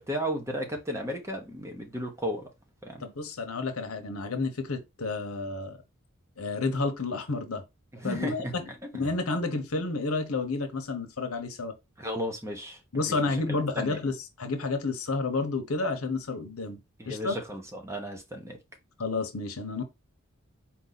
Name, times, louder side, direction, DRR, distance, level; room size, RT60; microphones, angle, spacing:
voice 1, 0.0-2.5 2.8-3.0 7.9-8.5 9.0-9.1 12.0-13.4 13.7-14.0 17.0-18.6, equal, 15° right, 0.9 m, -34 dB
voice 2, 3.0-5.8 6.4-7.6 8.0-8.6 8.9-11.7 12.9-16.8 17.1-17.3 19.0-19.8, left 3 dB, 85° left, 1.0 m, -30 dB
4.4 x 2.7 x 4.0 m
head